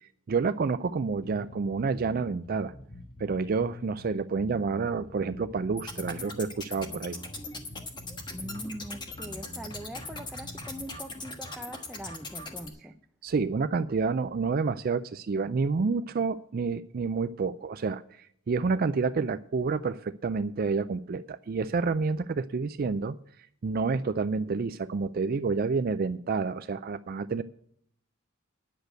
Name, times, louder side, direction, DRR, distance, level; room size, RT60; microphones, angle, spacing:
voice 1, 0.0-2.7 3.2-7.2 13.2-23.1 23.6-27.4, right 4 dB, 45° right, 12 dB, 0.4 m, -29 dB
sound 1, 1.2-10.8, left 1 dB, 60° left, 2.5 m, -46 dB
sound 2, 5.8-12.7, left 2 dB, 20° left, 1.3 m, -40 dB
voice 2, 8.3-12.9, equal, ahead, 3 dB, 0.6 m, -42 dB
10.0 x 6.6 x 9.0 m, 0.67 s
head